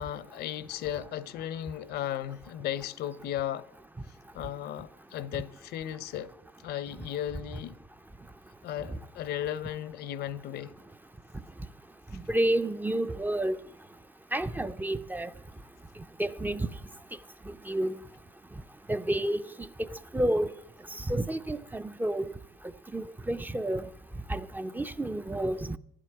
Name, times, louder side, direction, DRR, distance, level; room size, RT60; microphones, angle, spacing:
voice 1, 0.0-3.7 4.3-6.3 6.6-7.8 8.6-10.7, left 11 dB, 70° left, 0.7 m, -35 dB
voice 2, 12.1-13.6 14.3-15.3 16.2-16.7 17.5-18.0 18.9-19.5 19.8-20.6 21.0-22.3 22.9-23.9 24.3-25.8, right 1 dB, 10° right, 0.4 m, -30 dB
11.5 x 7.6 x 9.3 m
cardioid pair, 110°, 17 cm